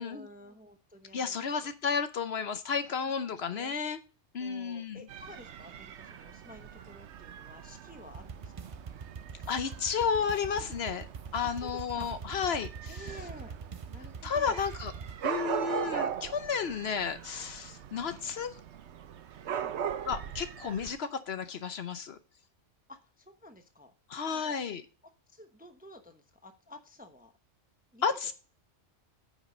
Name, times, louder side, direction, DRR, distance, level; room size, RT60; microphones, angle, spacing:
voice 1, 0.0-1.7 3.5-3.7 4.4-8.8 9.4-9.5 11.4-12.1 12.9-13.5 13.9-14.6 16.4-16.8 19.4-19.8 22.9-23.9 24.3-24.6 25.3-27.3 27.9-28.3, left 1 dB, 10° right, 6 dB, 0.8 m, -51 dB
voice 2, 1.1-4.0 4.3-5.0 9.5-11.1 11.3-13.0 14.2-14.9 15.2-18.6 20.1-22.2 24.1-24.8 28.0-28.3, left 6 dB, 60° left, 10 dB, 1.0 m, -32 dB
Dog / Cat, 5.1-21.0, right 8 dB, 70° right, 1.0 m, -40 dB
sound 1, 8.1-15.1, right 6 dB, 45° right, 0.4 m, -44 dB
9.6 x 5.2 x 5.1 m, 0.36 s
omnidirectional pair, 1.3 m